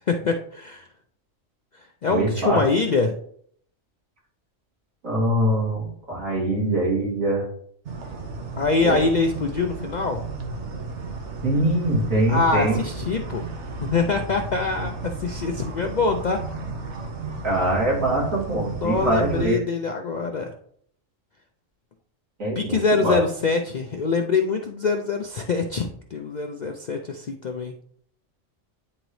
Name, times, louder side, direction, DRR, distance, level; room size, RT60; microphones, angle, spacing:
voice 1, 0.1-0.9 2.0-3.2 8.6-10.2 12.3-13.4 13.8-16.4 18.8-20.5 22.6-27.7, left 4 dB, 65° left, 4 dB, 0.4 m, -24 dB
voice 2, 2.1-2.6 5.0-7.5 8.8-9.1 11.4-12.8 17.4-19.6 22.4-23.2, right 1 dB, 85° right, -5 dB, 2.9 m, -23 dB
sound 1, 7.9-19.4, right 3 dB, 65° right, 1.2 m, -34 dB
9.8 x 3.9 x 3.1 m, 0.64 s
omnidirectional pair, 1.3 m